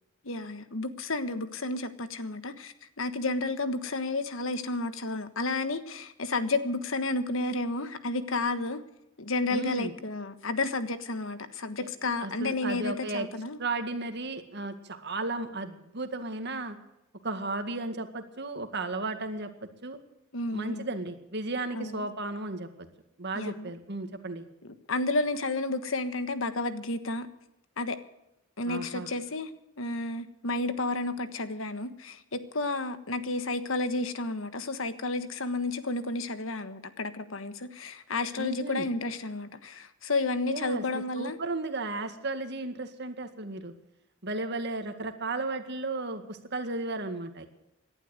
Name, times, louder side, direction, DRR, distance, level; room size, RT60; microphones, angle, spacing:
voice 1, 0.2-8.8 9.2-13.6 20.3-20.9 21.7-22.0 23.3-23.7 24.6-27.3 27.8-28.0 28.6-29.5 29.8-41.4, left 2 dB, 75° left, 11 dB, 1.4 m, -31 dB
voice 2, 9.5-9.9 11.8-11.9 12.2-13.3 13.6-16.8 17.2-20.0 20.5-22.9 23.2-24.4 28.7-29.1 38.4-38.9 40.4-43.7 44.2-47.5, right 2 dB, 55° right, 7 dB, 2.0 m, -34 dB
18.0 x 11.5 x 6.6 m, 0.88 s
head